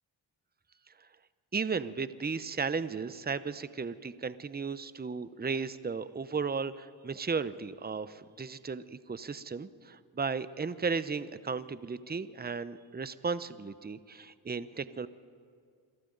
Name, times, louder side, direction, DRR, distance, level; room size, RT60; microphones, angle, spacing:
voice 1, 1.5-15.1, right 5 dB, 20° right, 14 dB, 0.8 m, -35 dB
28.0 x 23.0 x 4.0 m, 2.2 s
cardioid pair, 50°, 46 cm